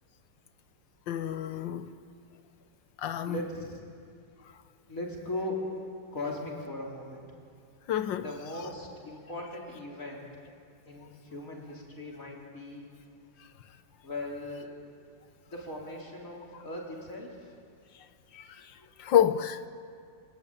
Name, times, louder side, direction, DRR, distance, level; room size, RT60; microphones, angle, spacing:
voice 1, 1.1-1.9 3.0-3.4 7.9-8.2 18.3-18.4 19.0-19.7, left 10 dB, 80° left, 1.6 m, -27 dB
voice 2, 3.2-3.8 4.9-5.6 6.1-7.2 8.2-10.3 10.8-12.9 14.0-14.7 15.5-17.5 18.8-18.9, left 2 dB, 45° left, 4.9 m, -39 dB
26.5 x 21.5 x 9.1 m
omnidirectional pair, 2.0 m